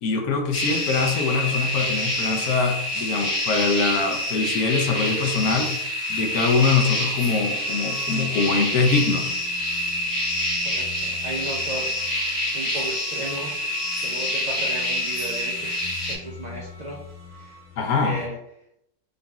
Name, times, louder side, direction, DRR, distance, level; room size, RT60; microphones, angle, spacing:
voice 1, 0.0-5.7 6.1-9.3 17.8-18.2, left 4 dB, 90° left, 4 dB, 1.2 m, -23 dB
sound 1, 0.5-16.2, left 1 dB, 35° left, 1.3 m, -27 dB
sound 2, 2.1-18.3, left 3 dB, 30° right, 0.7 m, -45 dB
voice 2, 10.6-17.0 17.3-17.6 18.0-18.4, right 2 dB, 75° right, -2 dB, 0.4 m, -36 dB
4.0 x 3.8 x 2.3 m, 0.78 s
omnidirectional pair, 1.5 m